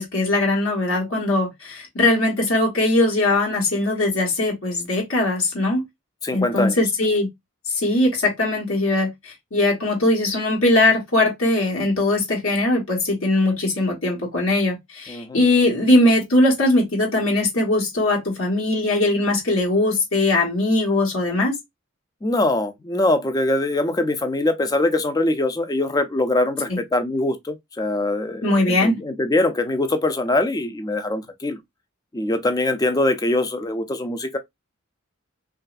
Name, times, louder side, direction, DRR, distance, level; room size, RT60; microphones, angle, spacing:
voice 1, 0.0-5.8 6.3-7.3 7.7-21.6 26.7-26.8 28.4-29.0, left 2 dB, 75° left, 1.2 m, -20 dB
voice 2, 6.2-6.8 15.1-15.4 22.2-31.6 32.1-34.4, left 2 dB, 20° left, 0.4 m, -23 dB
3.0 x 2.4 x 2.4 m
head